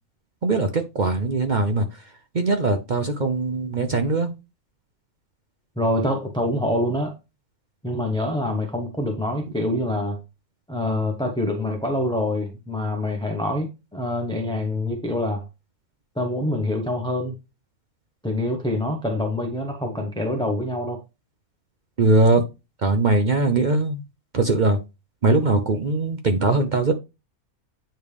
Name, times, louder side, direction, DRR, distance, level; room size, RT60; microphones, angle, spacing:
voice 1, 0.4-1.9 2.3-4.3 22.0-22.4 22.8-24.0 24.3-24.8 25.2-26.9, right 3 dB, 50° right, 0.5 m, -21 dB
voice 2, 5.8-7.1 7.8-10.2 10.7-15.5 16.2-17.3 18.2-21.0, left 1 dB, 5° left, 0.6 m, -25 dB
9.0 x 3.3 x 3.3 m
omnidirectional pair, 1.6 m